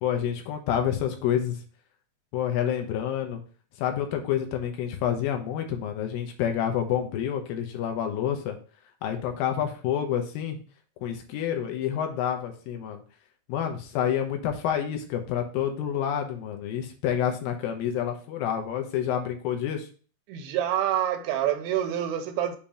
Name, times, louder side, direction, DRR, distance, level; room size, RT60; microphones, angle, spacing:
voice 1, 0.0-1.6 2.3-3.4 3.8-8.6 9.0-10.6 11.0-13.0 13.5-19.9, left 9 dB, 75° left, 4 dB, 2.3 m, -28 dB
voice 2, 20.3-22.6, right 11 dB, 80° right, 6 dB, 2.1 m, -27 dB
7.1 x 2.9 x 5.0 m, 0.39 s
omnidirectional pair, 4.9 m